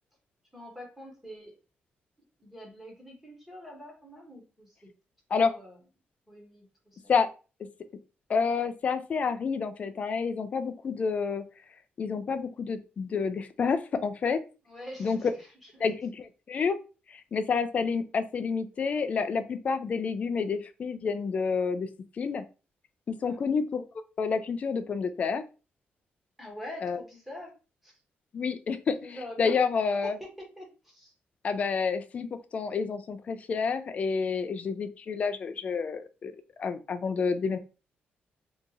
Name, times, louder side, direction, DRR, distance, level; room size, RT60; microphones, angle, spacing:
voice 1, 0.5-1.6 2.4-4.9 5.3-5.8 6.3-7.2 14.7-15.8 23.2-23.4 26.4-27.5 27.8-27.9 29.0-29.5 30.0-30.1 30.6-31.1, left 1 dB, 5° right, -1 dB, 1.0 m, -45 dB
voice 2, 8.3-11.4 12.0-14.4 15.0-15.2 15.8-16.8 17.1-21.9 22.2-22.4 23.1-23.9 24.2-25.4 26.8-27.0 28.3-30.2 31.4-32.3 32.5-36.3 36.6-37.6, left 5 dB, 40° left, 10 dB, 0.3 m, -29 dB
2.8 x 2.4 x 3.9 m, 0.33 s
wide cardioid pair, 165°, 4 cm